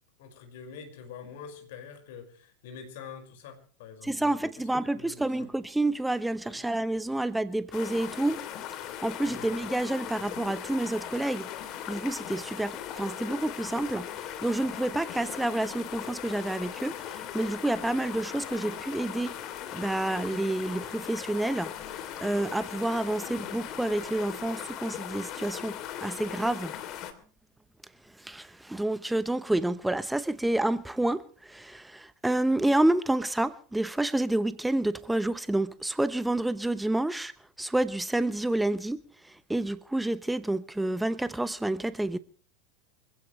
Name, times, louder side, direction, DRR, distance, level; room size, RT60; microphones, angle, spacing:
voice 1, 0.2-4.4 4.9-5.2 6.5-6.7 9.3-9.5, left 6 dB, 65° left, 5.4 m, -45 dB
voice 2, 4.0-8.4 8.8-11.5 11.9-19.3 19.7-21.7 22.2-26.7 28.2-37.3 37.6-42.2, right 1 dB, 5° right, 0.9 m, -29 dB
sound 1, 7.7-27.1, left 10 dB, 45° left, 3.1 m, -39 dB
25.5 x 16.0 x 3.2 m
hypercardioid pair, 85°, 0 cm